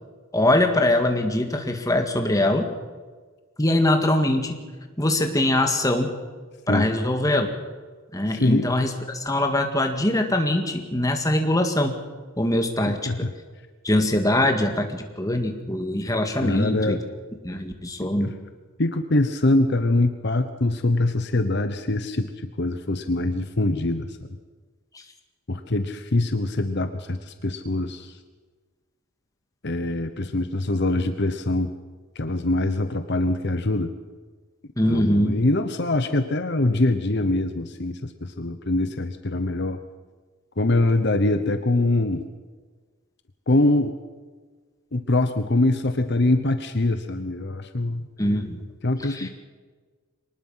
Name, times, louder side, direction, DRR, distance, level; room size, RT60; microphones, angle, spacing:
voice 1, 0.3-2.7 3.6-4.6 5.0-6.1 6.7-7.5 8.1-11.9 12.4-13.0 13.8-17.0 17.4-18.3 34.8-35.4 48.2-48.6 49.0-49.3, left 1 dB, 15° left, 4 dB, 1.9 m, -22 dB
voice 2, 8.3-8.7 12.9-13.3 16.4-17.0 18.0-18.3 18.8-24.2 25.5-28.1 29.6-31.7 32.1-33.9 34.9-39.8 40.6-42.2 43.5-44.0 44.9-48.1 48.8-49.3, left 2 dB, 50° left, 9 dB, 1.0 m, -23 dB
24.0 x 19.5 x 5.7 m, 1.4 s
head